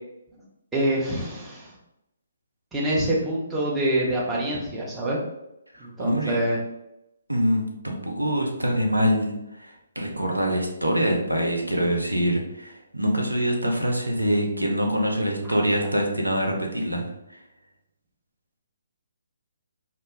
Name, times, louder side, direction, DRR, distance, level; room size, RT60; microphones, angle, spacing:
voice 1, 0.7-1.7 2.7-5.2 5.8-6.6 15.4-15.5, right 1 dB, 10° right, -5 dB, 0.7 m, -26 dB
voice 2, 5.7-6.4 7.3-17.0, equal, 85° right, 1 dB, 0.6 m, -25 dB
2.1 x 2.0 x 3.2 m, 0.86 s
figure-of-eight pair, 135°, 0 cm